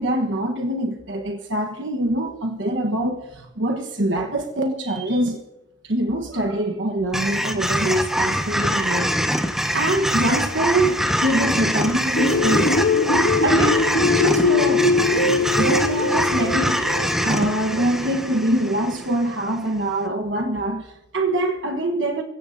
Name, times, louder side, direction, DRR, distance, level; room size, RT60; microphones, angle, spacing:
voice 1, 0.0-5.4 5.8-9.1 9.7-12.8 13.4-14.9 15.6-22.2, right 1 dB, 70° right, 1.3 m, -24 dB
sound 1, 7.1-19.4, equal, ahead, 1.3 m, -24 dB
sound 2, 12.2-18.7, left 3 dB, 55° left, 1.1 m, -22 dB
27.0 x 16.5 x 2.7 m
head